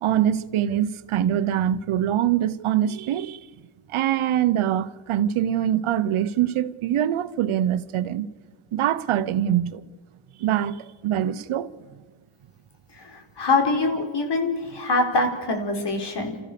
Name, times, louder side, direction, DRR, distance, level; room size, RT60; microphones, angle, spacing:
voice 1, 0.0-3.4 3.9-8.3 8.7-9.8 10.4-11.7, right 11 dB, 85° right, 0.9 m, -23 dB
voice 2, 12.9-16.4, left 3 dB, 55° left, 4.4 m, -24 dB
30.0 x 14.0 x 6.8 m
cardioid pair, 70°, 48 cm